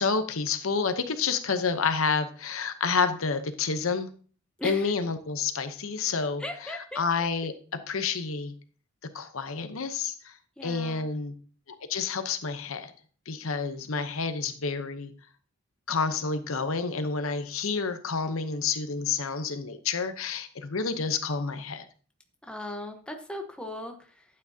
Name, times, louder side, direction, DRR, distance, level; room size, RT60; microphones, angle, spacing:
voice 1, 0.0-4.1 4.6-7.5 7.9-8.5 9.1-10.3 10.6-11.3 11.9-12.9 13.3-15.1 15.9-21.9, left 5 dB, 65° left, 9 dB, 0.8 m, -29 dB
voice 2, 4.6-4.9 6.4-7.0 10.6-11.1 22.4-24.2, left 1 dB, 5° left, 3 dB, 1.0 m, -38 dB
12.0 x 8.7 x 2.8 m, 0.40 s
head